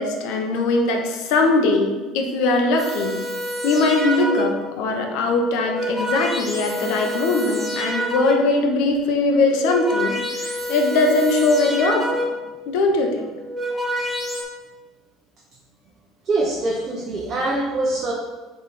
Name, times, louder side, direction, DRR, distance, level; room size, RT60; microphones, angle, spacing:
voice 1, 0.0-3.2 3.6-12.2 12.7-13.3, left 3 dB, 70° left, 2 dB, 1.1 m, -21 dB
sound 1, 2.8-4.7 5.5-8.7 9.4-12.6 13.3-14.4, equal, 5° left, 1.1 m, -27 dB
voice 2, 16.2-18.1, right 2 dB, 25° right, -3 dB, 1.0 m, -23 dB
8.0 x 3.6 x 4.3 m, 1.3 s
cardioid pair, 155°, 0 cm